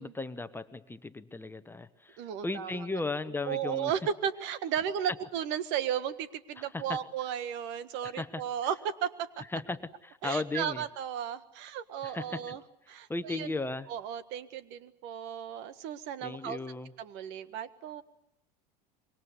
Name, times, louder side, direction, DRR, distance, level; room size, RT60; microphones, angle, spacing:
voice 1, 0.0-3.9 6.6-7.0 8.0-8.4 9.5-10.8 12.0-12.6 13.1-13.9 16.2-16.9, left 3 dB, 10° left, 11 dB, 1.1 m, -36 dB
voice 2, 2.2-2.7 3.4-9.1 10.2-12.6 12.9-13.6 13.9-16.6 17.0-18.0, right 9 dB, 60° right, 13 dB, 1.7 m, -34 dB
25.5 x 22.5 x 8.3 m, 0.81 s
hypercardioid pair, 90°, 21 cm